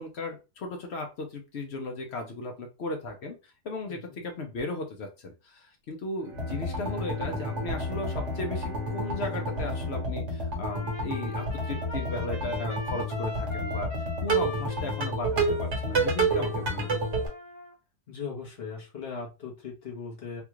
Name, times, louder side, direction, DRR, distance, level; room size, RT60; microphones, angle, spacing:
voice 1, 0.0-17.2, left 2 dB, 65° left, 3 dB, 0.6 m, -36 dB
voice 2, 3.9-4.2 18.1-20.4, left 5 dB, 40° left, -2 dB, 1.1 m, -39 dB
Bowed string instrument, 6.2-12.2, right 3 dB, 75° right, 0.5 m, -44 dB
sound 1, 6.3-17.3, right 1 dB, 45° right, 1.2 m, -30 dB
Trumpet, 10.6-17.7, left 2 dB, 15° left, 0.6 m, -42 dB
3.5 x 2.4 x 3.0 m, 0.29 s
omnidirectional pair, 1.9 m